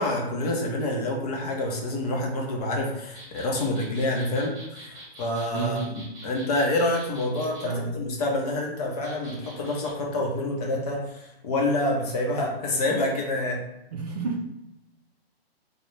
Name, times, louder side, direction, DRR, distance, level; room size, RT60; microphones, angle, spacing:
voice 1, 0.0-13.6, left 1 dB, 40° left, -1 dB, 0.6 m, -27 dB
sound 1, 3.1-7.7 9.0-9.9, right 1 dB, 15° right, 0.9 m, -45 dB
voice 2, 5.5-5.9 7.6-8.0 13.9-14.4, right 4 dB, 40° right, 1 dB, 0.4 m, -30 dB
2.4 x 2.1 x 3.1 m, 0.91 s
hypercardioid pair, 140°, 31 cm